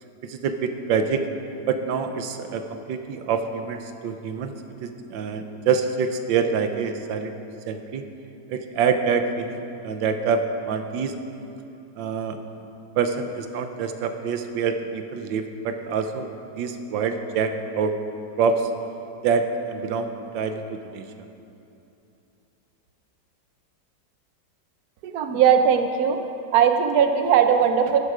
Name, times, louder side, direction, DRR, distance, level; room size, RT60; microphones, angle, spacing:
voice 1, 0.2-1.2 1.7-4.5 4.8-7.3 7.7-8.0 8.5-11.1 12.0-12.4 13.0-16.3 16.6-17.9 18.4-18.7 19.2-21.0, right 6 dB, 90° right, 7 dB, 1.5 m, -26 dB
voice 2, 25.0-26.2 26.5-28.0, right 8 dB, 65° right, 6 dB, 1.2 m, -19 dB
14.0 x 11.0 x 4.9 m, 2.8 s
omnidirectional pair, 2.0 m